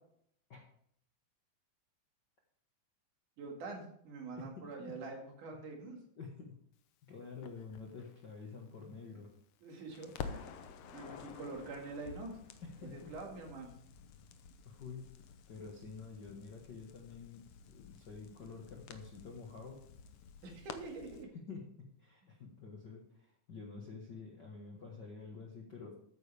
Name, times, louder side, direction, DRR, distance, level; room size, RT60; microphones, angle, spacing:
voice 1, 3.4-6.0 9.6-10.4 10.9-12.4 12.8-13.7 20.4-21.3, right 3 dB, 65° right, 1 dB, 3.5 m, -45 dB
voice 2, 4.4-4.9 6.2-6.5 7.1-9.3 12.6-13.1 14.6-15.1 15.5-19.8 21.3-21.6 22.0-26.0, left 4 dB, 50° left, -1 dB, 1.3 m, -49 dB
Crackle, 7.4-9.6 9.9-21.2, left 6 dB, 75° left, 1.4 m, -51 dB
13.5 x 9.3 x 3.5 m, 0.66 s
omnidirectional pair, 3.9 m